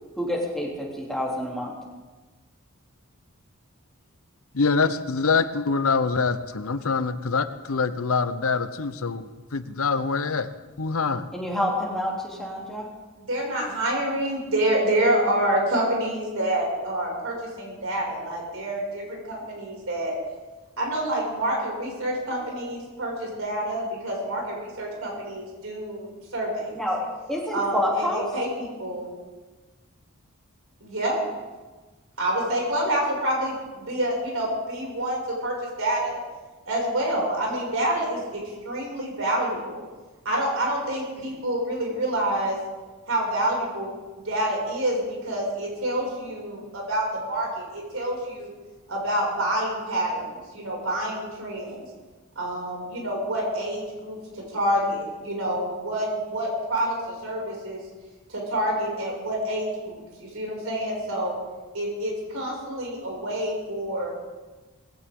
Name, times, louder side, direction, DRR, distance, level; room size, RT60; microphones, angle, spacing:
voice 1, 0.2-1.7 11.3-12.9 26.7-28.2, left 1 dB, ahead, -4 dB, 3.1 m, -28 dB
voice 2, 4.5-10.5 10.8-11.3, left 4 dB, 80° left, 12 dB, 0.8 m, -25 dB
voice 3, 13.2-20.1 20.8-26.7 27.5-29.1 30.8-31.2 32.2-36.2 36.7-39.8 40.2-42.6 43.1-43.9 44.2-48.5 48.9-51.8 52.3-57.8 58.3-61.3 61.7-64.1, right 1 dB, 75° right, -2 dB, 6.1 m, -27 dB
19.5 x 16.5 x 3.8 m, 1.3 s
head